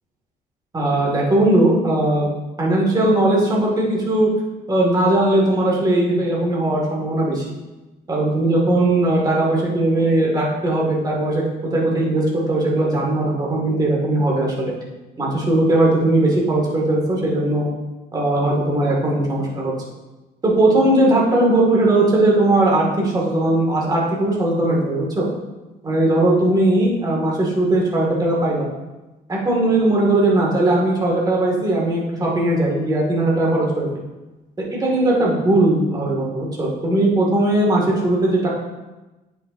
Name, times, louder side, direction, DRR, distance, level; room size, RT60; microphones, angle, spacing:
voice 1, 0.7-2.3 2.6-4.3 4.7-7.4 8.1-11.4 11.7-14.7 15.2-17.7 18.1-19.7 20.4-25.3 25.8-28.7 29.3-33.9 34.6-38.5, right 1 dB, 25° right, -3 dB, 2.0 m, -18 dB
9.4 x 5.8 x 2.6 m, 1.1 s
cardioid pair, 110°, 17 cm